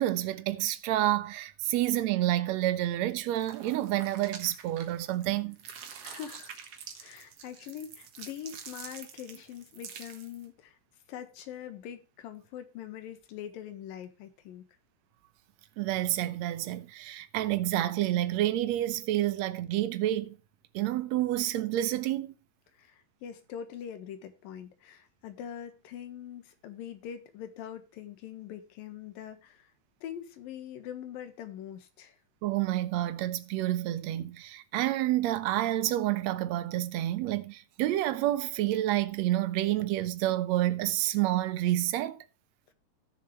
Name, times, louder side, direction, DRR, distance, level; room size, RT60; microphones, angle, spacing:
voice 1, 0.0-5.6 15.8-20.4 20.7-22.3 32.4-42.2, right 14 dB, 70° right, 1.7 m, -29 dB
sound 1, 3.3-5.2 5.5-10.5, right 7 dB, 55° right, 2.0 m, -47 dB
voice 2, 6.0-6.6 7.0-10.8 11.1-14.7 22.7-29.7 30.0-32.2, left 9 dB, 80° left, 3.1 m, -43 dB
17.0 x 6.9 x 3.1 m
omnidirectional pair, 4.0 m